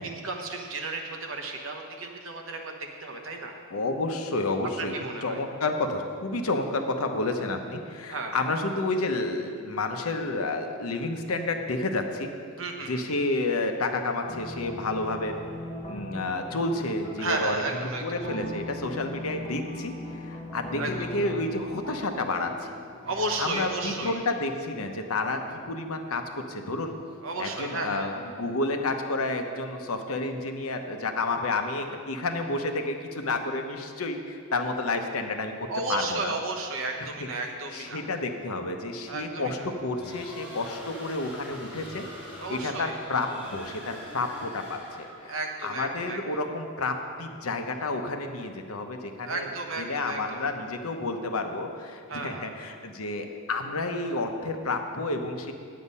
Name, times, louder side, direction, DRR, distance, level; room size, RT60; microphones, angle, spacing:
voice 1, 0.0-2.7 3.0-3.5 4.8-5.4 8.1-8.3 12.6-13.0 17.2-18.3 20.8-21.1 23.0-24.2 27.2-28.1 35.7-38.0 39.0-39.7 42.4-43.0 45.3-46.2 49.2-50.5 52.1-52.5, right 2 dB, 60° right, 3 dB, 1.2 m, -33 dB
voice 2, 3.7-4.9 5.2-12.3 12.9-15.3 15.9-17.6 18.0-22.7 23.4-26.9 27.4-36.3 37.0-37.3 37.7-42.1 42.5-49.5 49.8-55.5, left 2 dB, 75° left, 5 dB, 0.9 m, -30 dB
sound 1, 14.3-26.3, left 1 dB, 35° left, 1.2 m, -40 dB
sound 2, 39.9-45.3, equal, 5° right, 2.6 m, -43 dB
10.0 x 8.5 x 5.5 m, 2.2 s
head